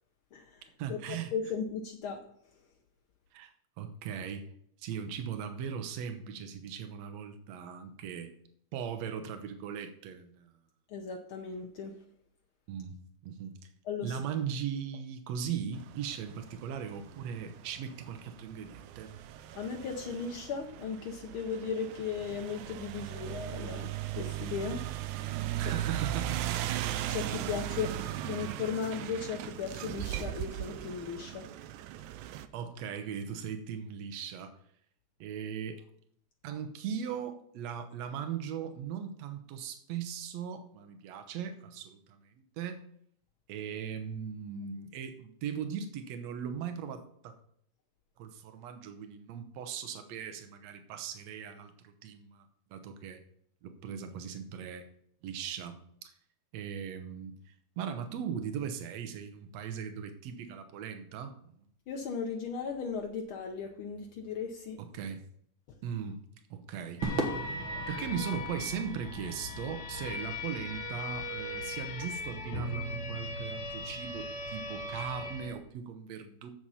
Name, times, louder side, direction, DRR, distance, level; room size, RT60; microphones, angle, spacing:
voice 1, 0.8-1.5 3.3-4.5 4.8-8.3 8.7-10.5 12.7-13.0 13.2-13.6 14.0-19.1 25.6-26.5 32.5-34.5 35.2-35.8 36.4-42.8 43.5-47.3 48.2-53.2 53.6-54.9 55.2-56.1 56.5-61.4 64.8-65.2 65.8-66.2 66.5-67.1 67.9-76.5, right 7 dB, 65° right, 8 dB, 2.0 m, -39 dB
voice 2, 1.3-2.2 10.9-11.9 13.9-14.2 19.5-24.8 27.1-27.9 28.2-31.4 61.9-64.8, left 6 dB, 85° left, 2 dB, 1.1 m, -36 dB
sound 1, 15.8-32.5, right 13 dB, 85° right, 2.0 m, -38 dB
sound 2, 67.0-75.5, left 2 dB, 40° left, 1.8 m, -39 dB
Crowd / Fireworks, 67.0-71.5, right 3 dB, 50° right, 1.8 m, -39 dB
7.9 x 7.0 x 5.6 m, 0.66 s
omnidirectional pair, 3.5 m